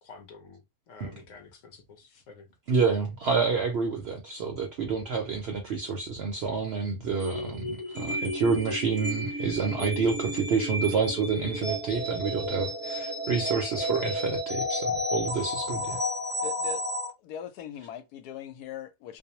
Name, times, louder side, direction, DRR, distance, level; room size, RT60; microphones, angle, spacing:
voice 1, 0.0-2.5, left 4 dB, 65° left, 0.9 m, -50 dB
voice 2, 2.7-16.0, right 5 dB, 70° right, 0.6 m, -28 dB
sound 1, 7.2-17.1, left 1 dB, 15° right, 0.4 m, -32 dB
voice 3, 16.4-16.8 17.2-19.2, left 9 dB, 85° left, 1.1 m, -40 dB
2.5 x 2.0 x 2.8 m
omnidirectional pair, 1.6 m